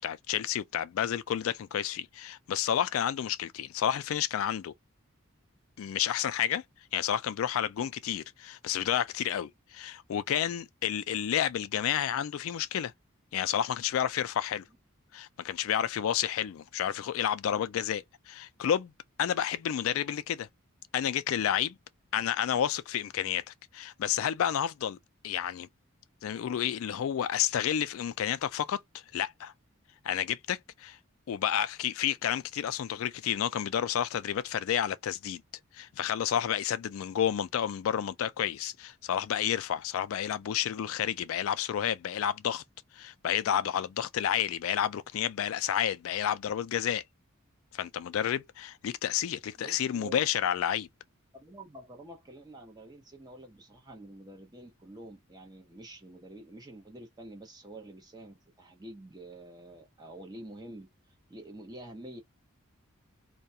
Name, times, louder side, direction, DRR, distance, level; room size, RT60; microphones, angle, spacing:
voice 1, 0.0-4.7 5.8-6.6 6.9-12.9 13.3-14.6 15.1-18.9 19.2-20.5 20.9-21.8 22.1-25.0 25.2-25.7 26.2-29.5 30.0-31.0 31.3-35.4 35.7-42.6 42.9-47.0 47.7-50.9, left 9 dB, 70° left, 0.3 m, -30 dB
voice 2, 49.6-50.1 51.3-60.9 61.3-62.2, right 1 dB, 20° right, 0.8 m, -47 dB
2.3 x 2.2 x 2.6 m
head